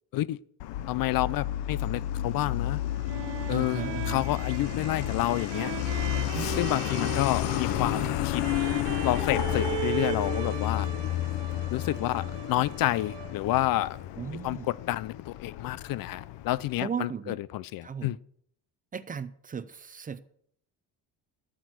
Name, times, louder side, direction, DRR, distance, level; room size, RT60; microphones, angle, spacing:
Truck, 0.6-16.8, left 13 dB, 90° left, 0.8 m, -32 dB
voice 1, 0.9-2.8 3.5-5.7 6.6-8.5 9.0-10.9 11.7-14.0 14.4-18.2, left 15 dB, 55° left, 0.5 m, -29 dB
sound 1, 2.7-13.6, right 13 dB, 85° right, 1.1 m, -38 dB
voice 2, 3.5-4.3 6.3-6.6 14.2-14.7 16.8-17.4 17.8-18.2 18.9-20.2, right 6 dB, 20° right, 0.4 m, -36 dB
12.5 x 6.4 x 7.9 m
cardioid pair, 165°, 41 cm